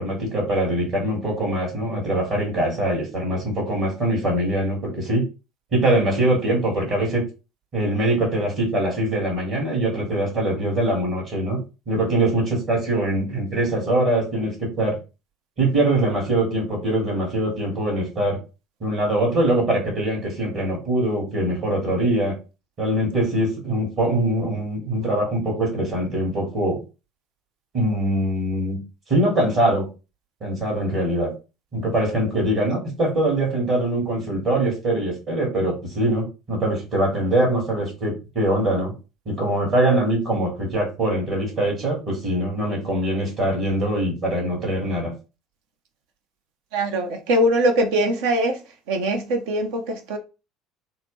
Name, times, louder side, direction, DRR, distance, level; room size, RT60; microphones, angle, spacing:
voice 1, 0.0-5.2 5.7-7.2 7.7-11.6 11.9-15.0 15.6-18.4 18.8-22.3 22.8-26.8 27.7-28.8 29.1-29.9 30.4-31.3 31.7-38.9 39.3-45.1, right 1 dB, 45° right, 1.8 m, -23 dB
voice 2, 46.7-48.6 48.9-50.2, right 1 dB, 60° right, 0.7 m, -22 dB
3.9 x 2.0 x 3.2 m
figure-of-eight pair, 60°, 0 cm